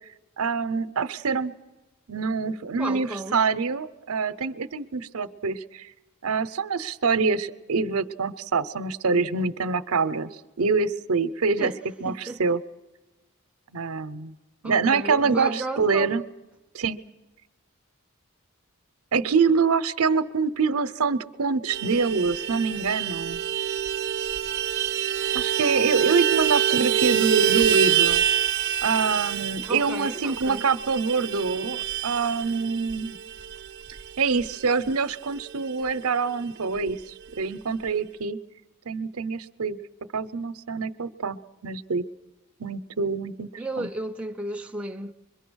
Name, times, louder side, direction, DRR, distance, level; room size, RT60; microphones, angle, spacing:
voice 1, 0.4-1.6 2.1-5.9 6.2-10.3 10.6-11.7 12.0-12.6 13.7-14.3 14.6-16.2 16.7-17.0 19.1-23.4 25.3-28.2 28.8-33.2 34.2-37.0 37.4-38.4 38.9-39.8 40.1-42.0 42.6-43.5 43.8-43.9, right 4 dB, 85° right, 0.8 m, -25 dB
voice 2, 2.8-3.4 11.6-12.4 14.6-16.2 29.7-30.7 43.6-45.1, right 2 dB, 5° right, 0.6 m, -33 dB
Vehicle horn car horn honking, 21.7-35.6 35.9-36.0 36.3-36.5 36.7-37.4, right 10 dB, 50° right, 0.7 m, -26 dB
25.0 x 22.5 x 6.3 m
head